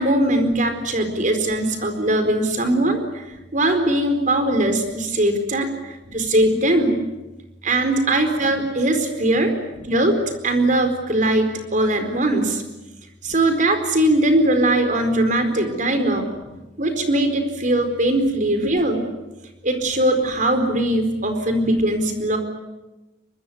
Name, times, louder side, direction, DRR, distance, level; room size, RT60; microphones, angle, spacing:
voice 1, 0.0-7.0 7.6-12.6 13.2-16.3 16.8-19.0 19.6-22.4, right 1 dB, 45° right, 7 dB, 4.4 m, -20 dB
24.0 x 23.0 x 9.5 m, 1.0 s
head